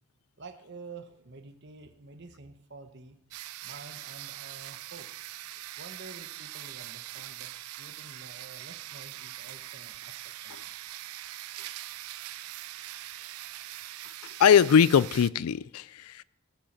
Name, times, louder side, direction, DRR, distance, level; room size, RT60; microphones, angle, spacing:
voice 1, 0.4-3.2 3.6-5.1 5.8-11.0, right 3 dB, 50° right, 1.0 m, -49 dB
sound 1, 3.3-15.3, right 15 dB, 85° right, 0.4 m, -42 dB
voice 2, 14.4-16.2, left 7 dB, 85° left, 0.4 m, -21 dB
14.5 x 7.9 x 7.4 m
head